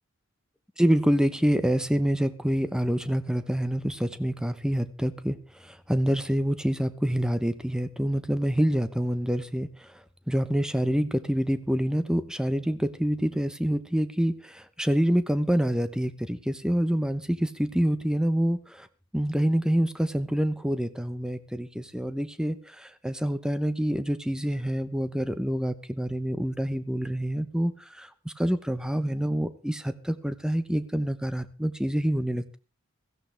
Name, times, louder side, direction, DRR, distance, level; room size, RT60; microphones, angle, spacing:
voice 1, 0.8-10.0 10.3-18.9 19.1-32.6, equal, 5° right, 11 dB, 0.8 m, -27 dB
16.5 x 15.0 x 3.4 m, 0.33 s
head